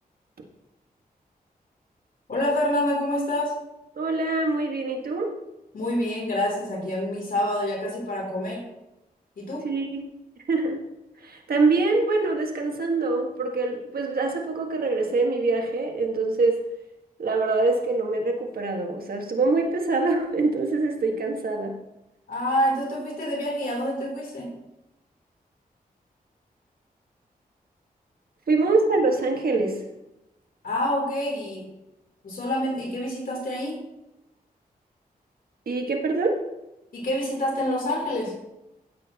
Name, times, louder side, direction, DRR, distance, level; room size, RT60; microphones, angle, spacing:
voice 1, 2.3-3.6 5.7-8.7 9.4-9.7 22.3-24.5 30.6-31.7 32.2-33.8 36.9-38.3, left 1 dB, 65° left, -2 dB, 3.6 m, -27 dB
voice 2, 3.9-5.4 9.6-10.0 10.5-10.8 11.2-16.6 17.2-21.8 28.5-29.8 35.6-36.4, right 3 dB, 75° right, 2 dB, 1.7 m, -24 dB
15.5 x 8.1 x 3.0 m, 0.91 s
wide cardioid pair, 80°, 16 cm